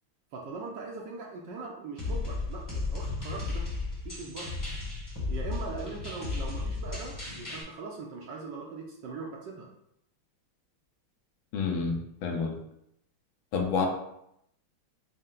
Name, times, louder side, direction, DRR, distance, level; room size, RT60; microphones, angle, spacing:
voice 1, 0.3-3.6 4.0-4.6 5.3-9.7, right 4 dB, 70° right, -1 dB, 1.1 m, -40 dB
sound 1, 2.0-7.6, left 3 dB, 15° left, 0.8 m, -34 dB
voice 2, 11.5-12.0 12.2-12.6 13.5-13.9, left 5 dB, 75° left, 2 dB, 1.4 m, -28 dB
5.4 x 2.1 x 3.7 m, 0.77 s
omnidirectional pair, 2.3 m